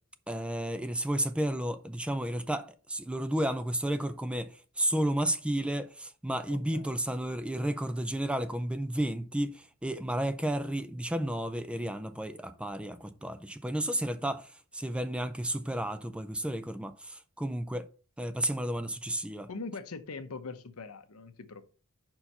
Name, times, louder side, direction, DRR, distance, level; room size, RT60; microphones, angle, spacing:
voice 1, 0.3-17.9 18.2-19.5, right 1 dB, 5° right, 0.4 m, -32 dB
voice 2, 6.5-7.0 19.5-21.7, left 4 dB, 75° left, 0.8 m, -42 dB
5.6 x 4.5 x 5.4 m
head